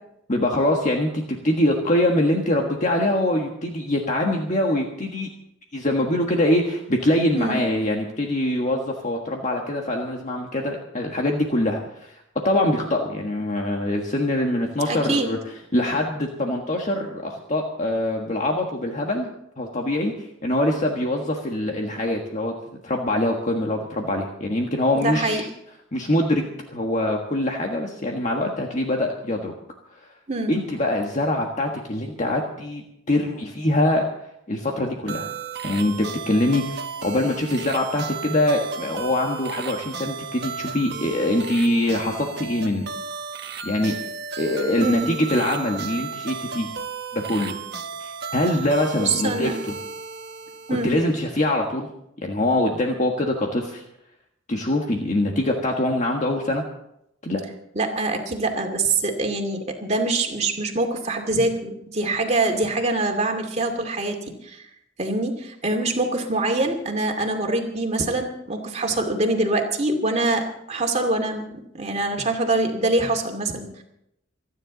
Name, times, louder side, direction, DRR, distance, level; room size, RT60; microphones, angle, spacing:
voice 1, 0.3-5.3 5.7-15.4 15.7-22.5 22.8-25.5 25.9-29.5 30.5-34.1 34.5-35.3 35.6-42.9 43.6-43.9 44.4-46.7 47.1-47.6 48.0-49.7 50.7-51.9 52.2-53.8 54.5-56.6 57.2-57.4, left 1 dB, 40° left, 1 dB, 1.5 m, -24 dB
voice 2, 14.9-15.3 24.9-25.4 30.3-30.5 44.8-45.1 49.0-49.6 50.7-50.9 57.7-64.6 65.0-73.8, right 2 dB, 35° right, 3 dB, 2.4 m, -24 dB
sound 1, 35.1-51.2, right 5 dB, 55° right, 1.1 m, -34 dB
27.5 x 10.0 x 4.0 m, 0.79 s
head